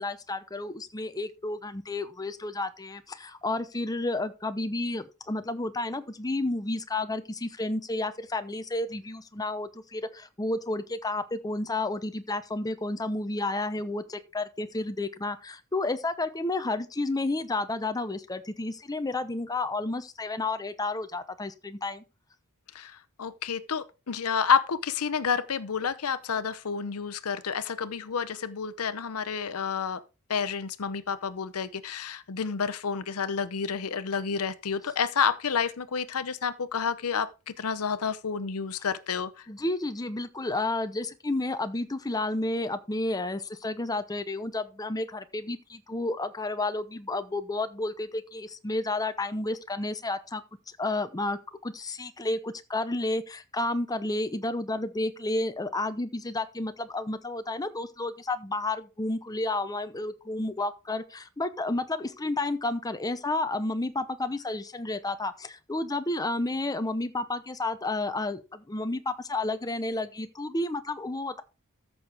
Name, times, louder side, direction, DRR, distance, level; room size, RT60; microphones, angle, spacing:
voice 1, 0.0-22.0 39.5-71.4, left 2 dB, 15° left, 0.7 m, -31 dB
voice 2, 22.7-30.0 30.3-39.3, left 6 dB, 80° left, 0.7 m, -29 dB
14.0 x 6.3 x 3.5 m
head